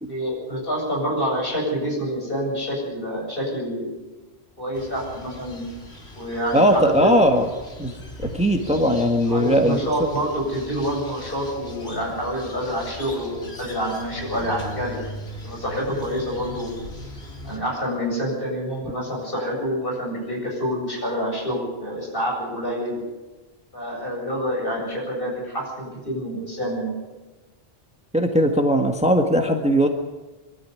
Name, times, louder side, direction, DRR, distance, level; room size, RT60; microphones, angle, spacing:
voice 1, 0.1-3.9 4.6-5.6 6.1-7.2 9.3-15.0 15.4-16.8 17.4-23.0 23.7-27.0, equal, 60° left, -1 dB, 8.1 m, -27 dB
sound 1, 4.7-17.6, left 1 dB, 75° left, 3.6 m, -39 dB
voice 2, 6.5-7.5 7.8-8.0 8.3-9.8 28.1-29.9, equal, 5° right, 4 dB, 1.5 m, -19 dB
23.5 x 13.0 x 9.7 m, 1.2 s
omnidirectional pair, 1.1 m